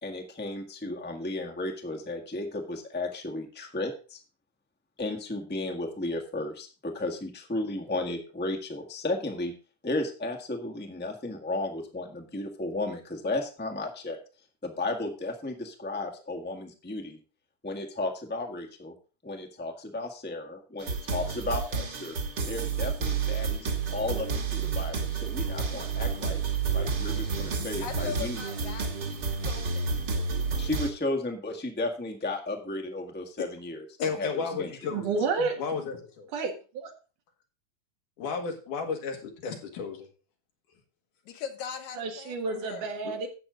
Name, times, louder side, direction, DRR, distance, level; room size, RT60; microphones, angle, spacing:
voice 1, 0.0-4.2 5.0-9.5 9.8-14.2 14.6-17.2 17.6-18.9 19.2-22.1 22.5-26.4 26.7-28.4 30.5-33.8 34.2-34.7, left 2 dB, 10° left, 2 dB, 0.6 m, -34 dB
sound 1, 20.8-30.9, right 5 dB, 45° right, 1.6 m, -30 dB
voice 2, 27.8-30.0 41.3-42.9, left 7 dB, 70° left, 6 dB, 2.6 m, -40 dB
voice 3, 34.0-35.1 35.6-36.0 38.2-40.1, left 5 dB, 90° left, 3 dB, 3.4 m, -32 dB
voice 4, 34.9-35.5 36.3-36.9 42.0-43.3, right 4 dB, 90° right, 3 dB, 3.3 m, -30 dB
12.0 x 8.2 x 3.9 m, 0.36 s
omnidirectional pair, 3.5 m